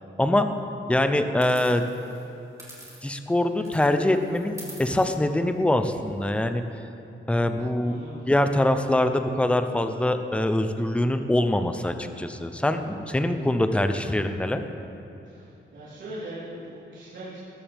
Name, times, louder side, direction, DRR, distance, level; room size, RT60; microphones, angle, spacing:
voice 1, 0.9-1.9 3.0-6.6 7.3-7.9 8.3-14.6, left 1 dB, 5° left, 7 dB, 0.6 m, -24 dB
sound 1, 1.4-3.3 3.6-6.4, right 1 dB, 15° right, 3.5 m, -48 dB
voice 2, 7.8-8.3 15.2-17.4, right 1 dB, 65° right, -10 dB, 3.8 m, -40 dB
19.5 x 14.5 x 3.5 m, 2.9 s
wide cardioid pair, 150°, 20 cm